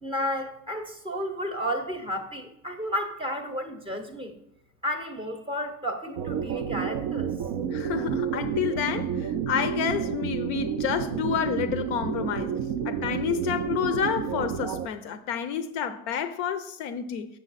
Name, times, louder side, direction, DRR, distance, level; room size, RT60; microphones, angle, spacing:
voice 1, 0.0-4.3 4.8-7.3, equal, 10° right, 0.7 m, -32 dB
sound 1, 6.2-14.9, right 8 dB, 30° right, 0.4 m, -30 dB
voice 2, 7.7-12.6 12.8-17.3, left 8 dB, 40° left, 0.6 m, -29 dB
7.3 x 6.5 x 4.0 m
hypercardioid pair, 115°, 50 cm